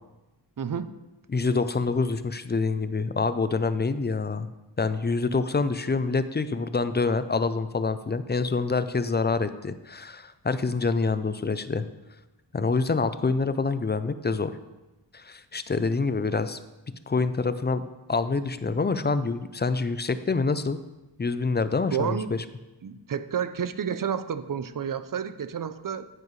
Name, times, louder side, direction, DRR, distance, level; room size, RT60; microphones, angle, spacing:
voice 1, 0.6-0.9 21.9-22.3 22.8-26.1, right 8 dB, 50° right, 12 dB, 0.6 m, -30 dB
voice 2, 1.3-4.5 4.8-11.8 12.5-14.5 15.1-16.6 17.1-20.8 21.2-22.4, left 4 dB, 25° left, 12 dB, 0.4 m, -26 dB
9.7 x 9.6 x 3.2 m, 1.1 s
wide cardioid pair, 110°, 43 cm